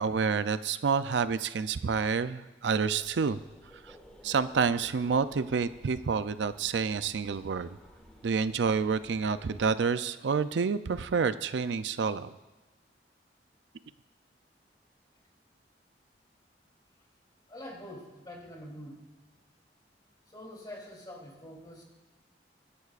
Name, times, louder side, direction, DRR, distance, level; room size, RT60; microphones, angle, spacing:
voice 1, 0.0-3.4 3.9-4.0 4.2-7.8 8.2-12.3, right 5 dB, 80° right, 13 dB, 0.4 m, -28 dB
sound 1, 3.0-9.7, equal, 5° left, 1.6 m, -55 dB
voice 2, 17.5-19.3 20.3-21.8, left 1 dB, 25° left, -1 dB, 3.1 m, -45 dB
24.0 x 11.5 x 2.5 m, 1.2 s
head